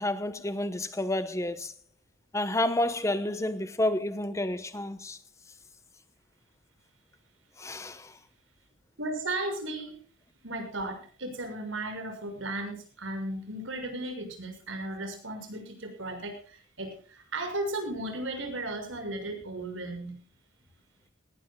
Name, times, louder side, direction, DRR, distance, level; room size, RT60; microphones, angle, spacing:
voice 1, 0.0-1.7 2.3-5.2 7.6-8.1, left 1 dB, 15° left, 0.9 m, -30 dB
voice 2, 9.0-10.0 10.4-20.2, right 2 dB, 85° right, 6.3 m, -35 dB
18.5 x 18.0 x 2.3 m
head